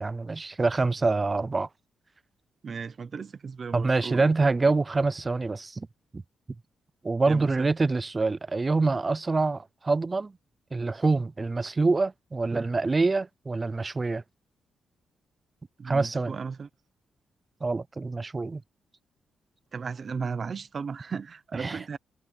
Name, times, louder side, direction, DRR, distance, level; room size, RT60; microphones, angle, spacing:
voice 1, 0.0-1.7 3.7-5.9 6.1-6.2 7.0-10.3 10.7-14.2 15.9-16.4 17.6-18.6 21.6-21.8, right 3 dB, 25° right, 0.4 m, -26 dB
voice 2, 2.6-4.3 7.3-7.7 15.8-16.7 19.7-22.0, right 5 dB, 40° right, 0.8 m, -35 dB
wide cardioid pair, 135°, 0 cm